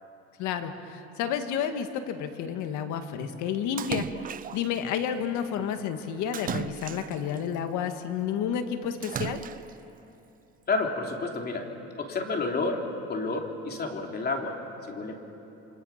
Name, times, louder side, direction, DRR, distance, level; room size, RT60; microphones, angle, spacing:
voice 1, 0.4-9.4, left 8 dB, 70° left, 7 dB, 1.9 m, -31 dB
Splash splatter, 3.8-4.8 6.3-7.4 9.0-9.8, right 9 dB, 30° right, 0.4 m, -35 dB
voice 2, 10.7-11.7 12.0-14.6 14.9-15.1, left 3 dB, 30° left, 2 dB, 3.2 m, -30 dB
27.5 x 25.5 x 5.9 m, 3.0 s
cardioid pair, 125°, 30 cm